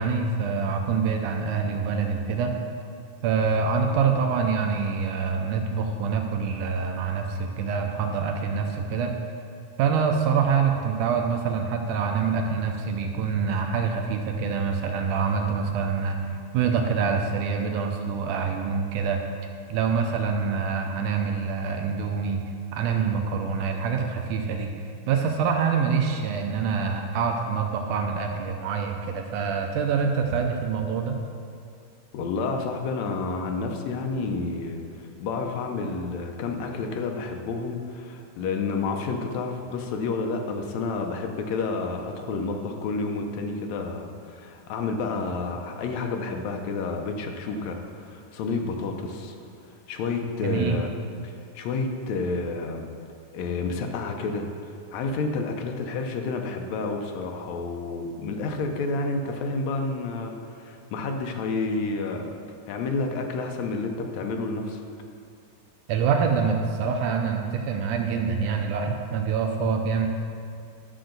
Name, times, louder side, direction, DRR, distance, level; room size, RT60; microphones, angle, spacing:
voice 1, 0.0-2.5 3.2-9.2 9.8-19.2 19.7-22.4 22.7-24.7 25.1-31.2 50.4-50.8 65.9-70.1, right 5 dB, 80° right, 3 dB, 2.0 m, -25 dB
voice 2, 32.1-49.3 49.9-50.9 51.2-52.9 53.3-62.3 62.7-64.8, left 3 dB, 75° left, 3 dB, 1.7 m, -30 dB
11.5 x 6.5 x 3.9 m, 2.3 s
omnidirectional pair, 3.9 m